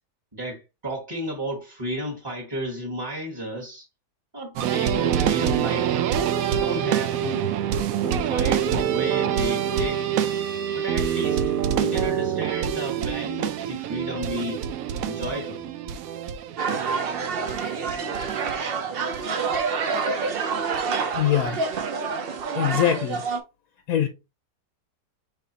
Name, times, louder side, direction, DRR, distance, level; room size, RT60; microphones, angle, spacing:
voice 1, 0.3-3.9 4.3-6.1 6.5-7.5 7.9-10.1 10.7-14.7 15.0-15.7, right 1 dB, 15° right, 1.0 m, -33 dB
sound 1, 4.6-19.2 19.5-19.6 19.9-20.0 20.7-20.8 21.1-21.8 22.4-22.5, right 9 dB, 70° right, 0.8 m, -26 dB
sound 2, 16.6-23.4, right 5 dB, 85° right, 0.5 m, -27 dB
voice 2, 21.1-21.6 22.5-23.2 23.9-24.1, left 10 dB, 65° left, 1.0 m, -22 dB
5.7 x 3.3 x 2.8 m
omnidirectional pair, 1.8 m